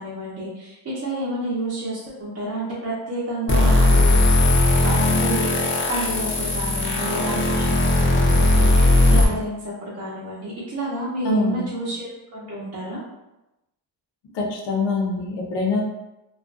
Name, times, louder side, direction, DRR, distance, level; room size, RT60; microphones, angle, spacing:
voice 1, 0.0-4.2 4.8-5.5 5.9-13.0, right 1 dB, 35° right, -8 dB, 0.6 m, -30 dB
sound 1, 3.5-9.2, left 1 dB, 30° left, 0.3 m, -18 dB
voice 2, 11.2-11.7 14.3-15.8, left 3 dB, 60° left, 0 dB, 0.6 m, -24 dB
2.4 x 2.1 x 2.4 m, 0.95 s
cardioid pair, 135°, 47 cm